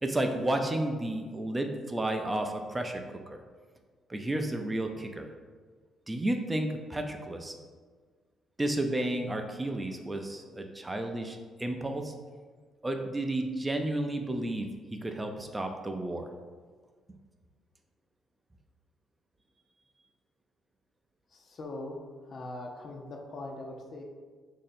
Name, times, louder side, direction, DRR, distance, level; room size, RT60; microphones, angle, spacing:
voice 1, 0.0-3.4 4.1-5.3 6.1-7.5 8.6-12.1 12.8-16.3, right 1 dB, 15° right, 4 dB, 0.4 m, -32 dB
voice 2, 21.3-24.0, left 2 dB, 55° left, 1 dB, 0.6 m, -41 dB
2.9 x 2.6 x 4.1 m, 1.5 s
cardioid pair, 90°, 0 cm